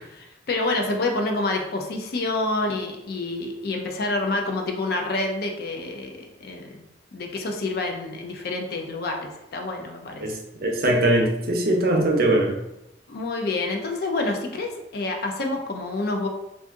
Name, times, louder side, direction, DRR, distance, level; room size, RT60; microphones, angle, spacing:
voice 1, 0.1-6.8 7.1-10.3 13.1-16.3, left 2 dB, 55° left, 3 dB, 0.4 m, -28 dB
voice 2, 10.2-12.5, right 1 dB, 55° right, 1 dB, 0.6 m, -21 dB
2.5 x 2.4 x 3.5 m, 0.90 s
head